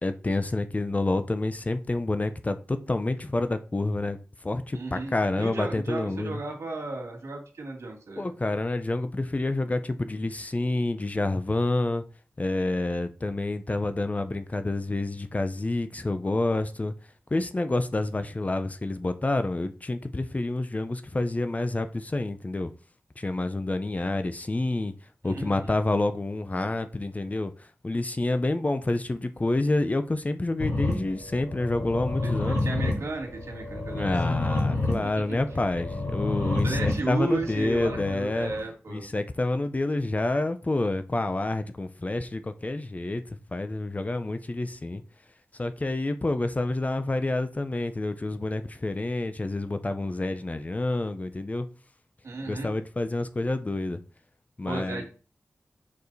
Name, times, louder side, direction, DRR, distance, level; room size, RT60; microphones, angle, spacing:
voice 1, 0.0-4.2 4.4-6.4 8.2-12.0 12.4-16.9 17.3-22.7 23.2-24.9 25.2-32.6 33.9-38.5 38.9-45.0 45.6-51.7 52.5-54.0 54.6-55.0, left 2 dB, 30° left, 0.7 m, -28 dB
voice 2, 4.7-8.3 25.2-25.7 32.2-34.3 35.0-35.4 36.6-39.1 52.2-52.7 54.6-55.0, right 3 dB, 85° right, 2.2 m, -34 dB
sound 1, 30.6-38.6, left 2 dB, 80° left, 3.9 m, -30 dB
6.9 x 4.9 x 4.1 m
wide cardioid pair, 70°, 5 cm